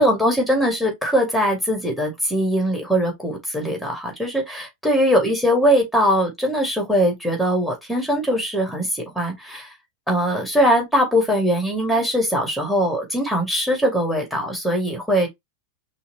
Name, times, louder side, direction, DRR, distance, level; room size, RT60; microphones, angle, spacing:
voice 1, 0.0-9.7 10.1-15.3, equal, ahead, 2.3 m, -21 dB
5.5 x 2.7 x 2.9 m
figure-of-eight pair, 90°, 0 cm